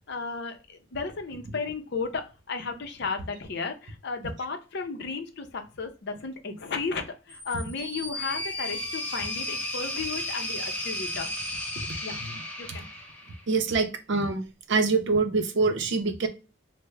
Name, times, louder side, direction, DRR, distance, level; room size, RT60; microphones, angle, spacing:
voice 1, 0.1-11.5 12.0-12.2 12.6-12.9, left 4 dB, 55° left, 6 dB, 0.6 m, -34 dB
sound 1, 7.3-13.5, left 1 dB, 10° left, 0.5 m, -34 dB
voice 2, 13.5-16.3, right 4 dB, 60° right, 7 dB, 0.6 m, -25 dB
3.3 x 2.0 x 3.2 m, 0.32 s
head